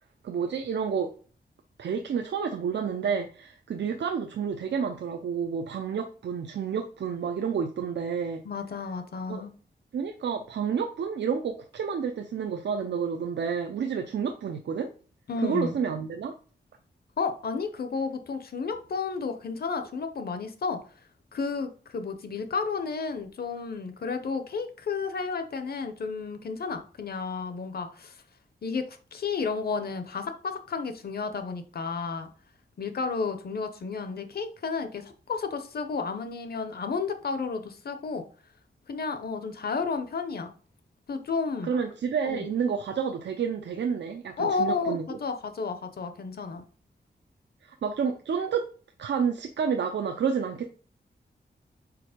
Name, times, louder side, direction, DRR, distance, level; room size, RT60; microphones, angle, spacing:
voice 1, 0.2-1.1 1.8-8.4 9.3-9.4 9.9-14.9 15.4-16.3 41.6-45.2 47.6-48.7 49.0-50.7, right 6 dB, 90° right, 5 dB, 0.6 m, -30 dB
voice 2, 8.4-9.5 15.3-15.7 17.2-20.8 21.3-28.1 28.6-32.3 32.8-38.2 38.9-40.5 41.1-41.7 42.2-42.5 44.4-46.6, left 4 dB, 60° left, 8 dB, 0.8 m, -32 dB
4.7 x 4.2 x 5.0 m, 0.41 s
wide cardioid pair, 160°, 18 cm